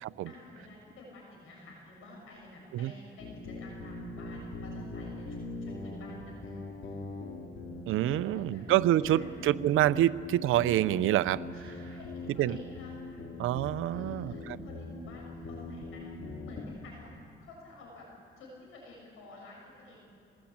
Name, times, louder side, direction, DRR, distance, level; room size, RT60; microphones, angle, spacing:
voice 1, 0.2-6.5 8.1-8.7 8.9-9.3 9.9-10.1 11.5-13.2 13.8-17.2 17.4-18.1 18.4-20.0, left 2 dB, 85° left, -2 dB, 7.2 m, -51 dB
sound 1, 3.2-16.7, left 3 dB, 65° left, 4.6 m, -41 dB
voice 2, 7.9-11.7 12.4-12.6 13.4-14.3, right 13 dB, 85° right, 16 dB, 0.6 m, -27 dB
24.5 x 19.5 x 8.7 m, 2.5 s
cardioid pair, 95°, 21 cm